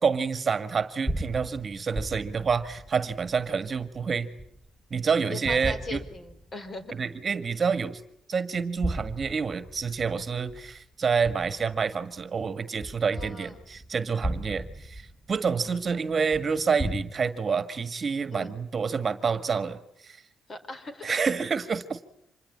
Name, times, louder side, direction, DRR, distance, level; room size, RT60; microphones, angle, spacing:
voice 1, 0.0-4.3 4.9-6.0 6.9-8.0 8.3-20.2 21.0-22.0, right 5 dB, 40° right, 11 dB, 1.8 m, -28 dB
sound 1, 1.1-4.9 5.5-6.8 7.3-7.4 8.5-12.2 12.8-17.0, equal, ahead, 2.2 m, -36 dB
voice 2, 5.2-6.9 13.1-13.6 15.6-15.8 18.3-18.5 20.5-21.1, left 3 dB, 35° left, 10 dB, 4.8 m, -40 dB
26.0 x 21.0 x 8.8 m, 0.75 s
cardioid pair, 90°, 0 cm